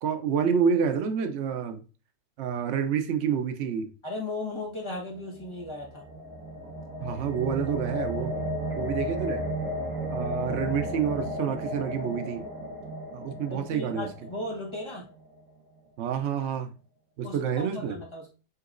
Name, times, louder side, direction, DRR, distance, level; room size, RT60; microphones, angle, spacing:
voice 1, 0.0-1.8 2.4-3.9 7.0-8.3 8.8-9.4 10.1-12.4 13.1-14.1 16.0-16.7 17.2-18.0, right 7 dB, 90° right, 0.6 m, -28 dB
voice 2, 4.0-6.0 13.5-15.1 17.2-18.3, left 2 dB, 20° left, 0.9 m, -36 dB
sound 1, 5.2-15.3, equal, 50° right, 1.7 m, -34 dB
5.6 x 3.0 x 2.5 m
omnidirectional pair, 1.8 m